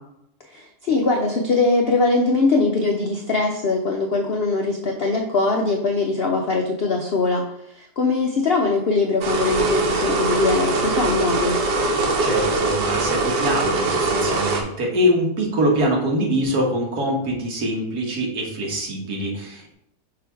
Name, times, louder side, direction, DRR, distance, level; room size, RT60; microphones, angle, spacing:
voice 1, 0.5-7.4 7.7-11.6, left 3 dB, 60° left, 1 dB, 0.6 m, -21 dB
sound 1, 9.2-14.6, right 3 dB, 85° right, 1.6 m, -22 dB
voice 2, 12.2-19.7, equal, 65° right, 0 dB, 1.8 m, -23 dB
5.9 x 3.8 x 4.5 m, 0.77 s
omnidirectional pair, 1.8 m